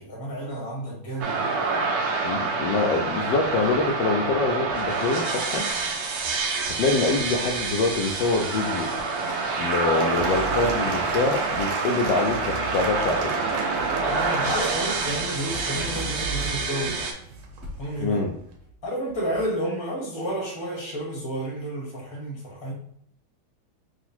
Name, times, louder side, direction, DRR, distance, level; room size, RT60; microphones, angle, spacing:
voice 1, 0.0-1.4 14.0-17.0 17.8-18.3 18.8-22.7, right 1 dB, 20° left, -3 dB, 0.8 m, -31 dB
sound 1, 1.2-17.1, right 4 dB, 70° right, 0.9 m, -27 dB
voice 2, 2.2-5.6 6.8-8.9 9.6-13.3 18.0-18.3, left 3 dB, 75° left, 0 dB, 1.0 m, -25 dB
sound 2, 3.4-5.8 6.7-7.2 8.4-8.5 8.9-9.0 9.3-9.4 9.7-19.5, right 2 dB, 40° right, 1.4 m, -40 dB
Applause / Crowd, 9.0-17.8 18.5-18.6, right 4 dB, 85° right, 1.6 m, -35 dB
3.9 x 2.5 x 4.3 m, 0.69 s
omnidirectional pair, 2.3 m